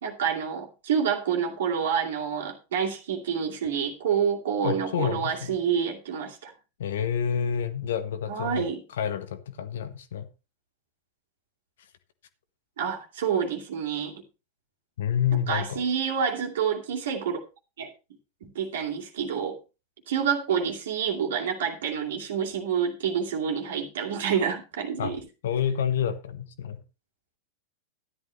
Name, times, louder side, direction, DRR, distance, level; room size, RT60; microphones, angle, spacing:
voice 1, 0.0-6.5 8.3-8.8 12.8-14.2 15.5-17.4 17.8-17.9 18.4-19.6 20.1-25.2, right 7 dB, 60° right, 2.4 m, -28 dB
voice 2, 4.6-5.6 6.8-8.7 9.0-10.3 15.0-15.8 25.0-25.1 25.4-26.8, left 8 dB, 60° left, 1.1 m, -28 dB
13.0 x 11.0 x 3.2 m
figure-of-eight pair, 90°, 0 cm